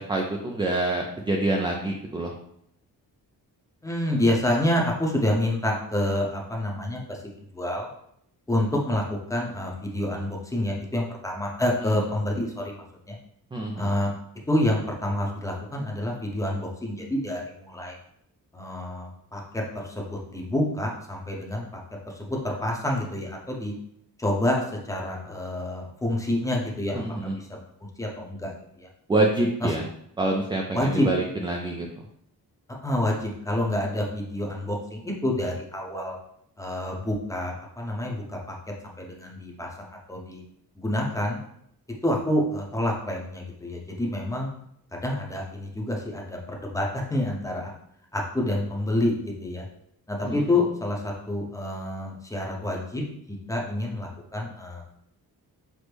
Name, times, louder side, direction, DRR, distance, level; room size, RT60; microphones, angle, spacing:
voice 1, 0.0-2.3 11.8-12.0 13.5-13.9 26.9-27.4 29.1-29.9 30.2-32.0 50.2-50.4, right 2 dB, 15° right, 1 dB, 0.3 m, -26 dB
voice 2, 3.8-7.2 7.5-7.9 8.5-13.2 13.8-14.1 14.5-18.0 18.5-21.6 22.1-23.7 24.2-27.0 27.3-27.5 28.0-28.5 28.8-28.9 29.6-29.7 30.7-31.1 32.8-36.2 36.6-38.5 39.0-40.4 40.8-41.4 42.0-44.5 44.9-47.7 48.1-49.7 50.1-53.0 53.3-54.8, left 1 dB, 10° left, -1 dB, 0.7 m, -28 dB
6.1 x 2.0 x 3.3 m, 0.72 s
cardioid pair, 130°, 37 cm